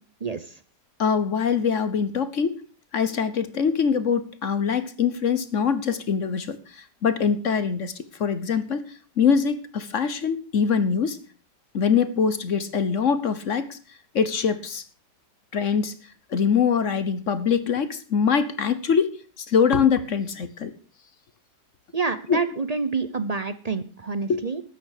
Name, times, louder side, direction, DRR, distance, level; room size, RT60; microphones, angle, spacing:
voice 1, 0.2-0.5 21.9-24.6, right 4 dB, 45° right, 12 dB, 0.5 m, -28 dB
voice 2, 1.0-2.6 2.9-8.9 9.2-11.2 11.7-13.8 14.1-14.8 15.5-16.0 16.3-20.7 22.3-22.4 24.3-24.4, left 6 dB, 50° left, 13 dB, 1.1 m, -23 dB
13.0 x 9.3 x 6.6 m, 0.40 s
omnidirectional pair, 1.9 m